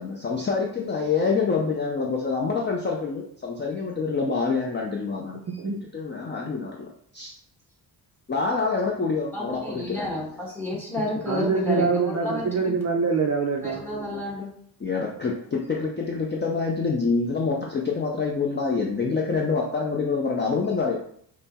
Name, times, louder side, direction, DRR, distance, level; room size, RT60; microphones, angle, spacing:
voice 1, 0.0-5.4 5.9-7.3 8.3-10.1 14.8-21.0, left 4 dB, 25° left, -1 dB, 0.4 m, -26 dB
voice 2, 5.5-5.8 11.3-13.8, right 5 dB, 40° right, 1 dB, 0.4 m, -24 dB
voice 3, 9.3-12.8 13.6-14.6 18.8-18.9, left 2 dB, 5° left, -4 dB, 1.4 m, -31 dB
5.4 x 2.0 x 4.1 m, 0.64 s
wide cardioid pair, 150°, 41 cm